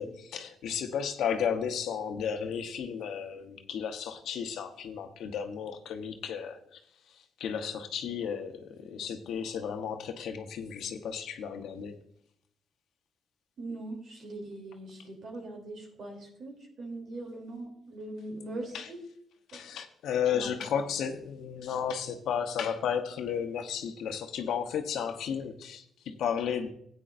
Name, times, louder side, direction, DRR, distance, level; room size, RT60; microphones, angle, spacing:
voice 1, 0.0-6.8 7.4-12.0 18.7-18.9 19.5-26.7, left 7 dB, 75° left, 6 dB, 0.9 m, -33 dB
voice 2, 13.6-19.0 19.5-19.6 20.3-20.5, right 2 dB, 60° right, 1 dB, 3.0 m, -41 dB
14.0 x 8.9 x 2.5 m, 0.69 s
cardioid pair, 90°, 0 cm